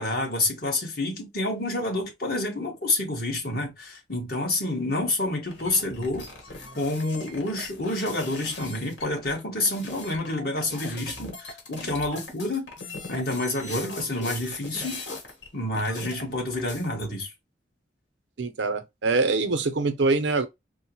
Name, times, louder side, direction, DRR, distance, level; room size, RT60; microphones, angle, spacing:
voice 1, 0.0-6.2 6.7-12.7 13.1-15.0 15.5-17.3, left 2 dB, 55° left, 1.6 m, -28 dB
sound 1, 5.5-15.5 15.7-17.1, left 2 dB, 80° left, 1.6 m, -40 dB
voice 2, 18.4-20.5, right 3 dB, 85° right, 0.6 m, -24 dB
4.5 x 2.1 x 2.9 m
head